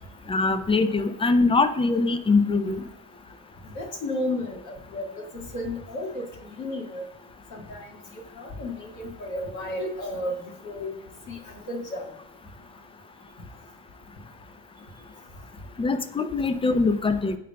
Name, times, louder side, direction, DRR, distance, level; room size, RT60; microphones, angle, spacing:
voice 1, 0.3-2.9 15.8-17.4, left 3 dB, 15° left, 11 dB, 0.6 m, -22 dB
voice 2, 3.8-6.3 6.6-7.0 7.5-7.8 8.4-10.3 10.6-10.9 11.3-11.4 11.7-12.1, left 1 dB, 50° left, -2 dB, 2.0 m, -32 dB
9.3 x 5.6 x 2.3 m, 0.72 s
figure-of-eight pair, 50°, 39 cm